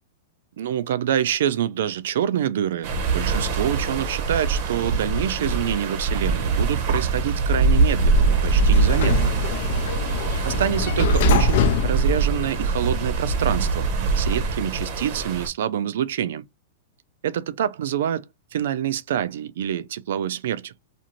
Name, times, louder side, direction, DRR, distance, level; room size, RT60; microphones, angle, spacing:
voice 1, 0.6-9.3 10.4-13.9 14.2-16.4 17.2-18.2 18.5-20.7, right 10 dB, 75° right, 0.3 m, -26 dB
sound 1, 2.8-15.5, right 3 dB, 50° right, 0.7 m, -22 dB
Sliding door, 7.8-13.0, left 8 dB, 60° left, 0.4 m, -26 dB
2.6 x 2.5 x 2.9 m
hypercardioid pair, 140°, 0 cm